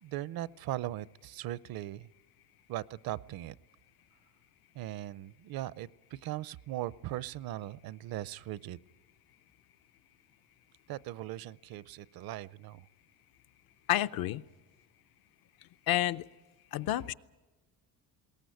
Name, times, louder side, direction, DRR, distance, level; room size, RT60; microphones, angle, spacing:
voice 1, 0.0-2.1 2.7-3.5 4.7-8.8 10.9-12.9, right 14 dB, 65° right, 20 dB, 0.6 m, -39 dB
voice 2, 13.9-14.4 15.9-16.2 16.7-17.1, left 13 dB, 65° left, 12 dB, 0.7 m, -29 dB
21.0 x 18.0 x 9.3 m, 1.2 s
cardioid pair, 145°, 39 cm